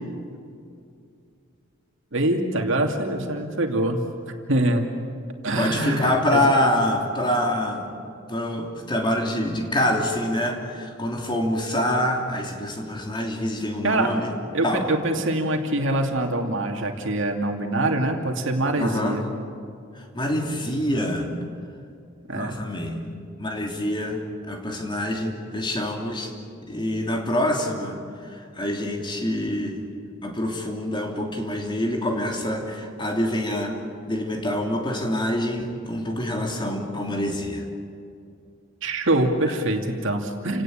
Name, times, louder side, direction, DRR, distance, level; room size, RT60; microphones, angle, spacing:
voice 1, 2.1-4.0 4.5-4.9 5.4-6.4 13.8-14.1 14.5-19.3 22.3-22.6 38.8-40.6, right 1 dB, 65° right, 3 dB, 2.6 m, -24 dB
voice 2, 5.5-7.9 8.3-14.3 14.6-14.9 18.8-19.2 20.1-21.3 22.3-23.0 23.4-26.3 26.7-28.0 28.5-29.8 30.2-33.8 34.0-37.7, left 1 dB, 25° left, 1 dB, 3.0 m, -26 dB
29.5 x 18.0 x 8.8 m, 2.4 s
head